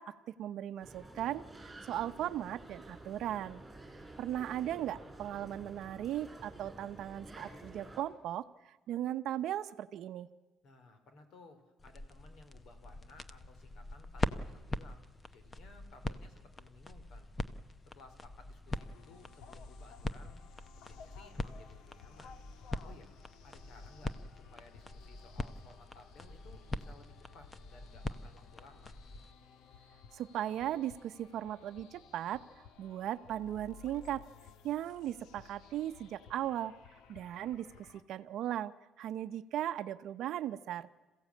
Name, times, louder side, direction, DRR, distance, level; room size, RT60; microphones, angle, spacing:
voice 1, 0.0-3.6 4.2-10.3 30.1-32.4 32.8-34.2 34.6-36.7 37.1-40.9, right 12 dB, 60° right, 12 dB, 0.8 m, -37 dB
sound 1, 0.8-8.0, right 2 dB, 10° right, 4.2 m, -51 dB
voice 2, 10.6-17.3 17.9-20.4 20.8-22.4 22.8-23.1 23.4-28.9, left 3 dB, 55° left, 8 dB, 3.5 m, -59 dB
sound 2, 11.8-29.3, left 2 dB, 15° left, 0.7 m, -43 dB
sound 3, 18.7-38.0, left 6 dB, 80° left, 1.5 m, -57 dB
27.5 x 15.5 x 8.5 m, 1.3 s
cardioid pair, 170°, 0 cm